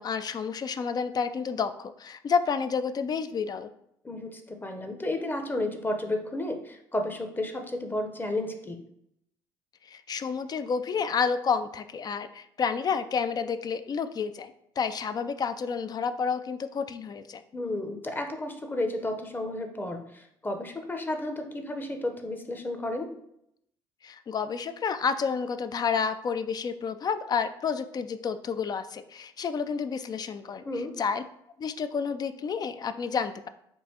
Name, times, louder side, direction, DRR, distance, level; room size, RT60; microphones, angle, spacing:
voice 1, 0.0-3.7 9.9-14.5 14.8-17.4 24.0-30.6 31.0-31.2 31.6-33.5, left 6 dB, 35° left, 11 dB, 0.3 m, -30 dB
voice 2, 4.0-8.8 17.5-23.1 30.6-30.9, left 1 dB, 20° left, 6 dB, 0.7 m, -32 dB
5.3 x 2.5 x 2.8 m, 0.76 s
hypercardioid pair, 60°, 11 cm